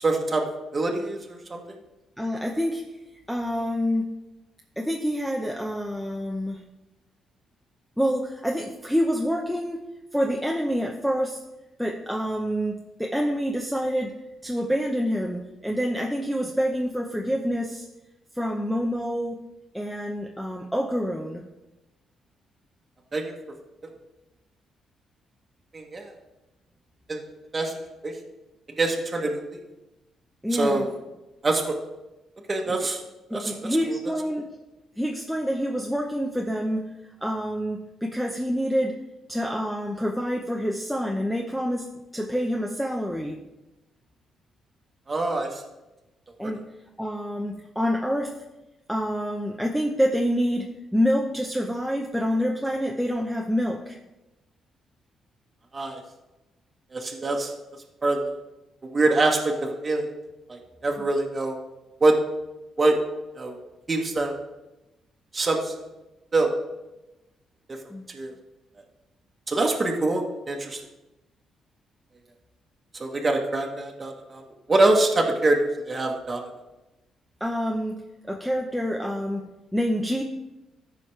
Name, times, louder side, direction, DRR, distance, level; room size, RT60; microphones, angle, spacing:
voice 1, 0.0-0.4 0.7-1.6 23.1-23.2 25.7-26.1 27.1-27.2 27.5-27.7 28.0-28.1 28.8-29.4 30.5-30.9 31.4-31.7 32.5-33.0 33.3-34.0 45.1-45.6 46.4-46.5 55.7-56.0 56.9-57.5 58.0-58.3 58.8-60.0 60.5-61.6 62.0-62.1 62.8-63.0 63.4-63.6 63.9-64.3 65.3-65.7 66.3-66.5 68.1-68.3 69.5-70.8 73.0-74.4 74.7-76.4, right 2 dB, 30° right, 0 dB, 1.2 m, -24 dB
voice 2, 2.2-2.8 3.3-4.1 4.8-6.6 8.0-9.8 10.1-11.4 11.8-17.8 18.3-19.4 19.7-21.4 30.4-30.9 32.7-32.9 33.3-34.5 35.0-36.9 37.2-39.0 39.3-43.4 46.4-46.6 47.0-48.4 48.9-54.0 67.9-68.1 77.4-80.2, equal, ahead, 1 dB, 0.7 m, -27 dB
13.5 x 4.8 x 3.2 m, 1.0 s
cardioid pair, 90°, 0 cm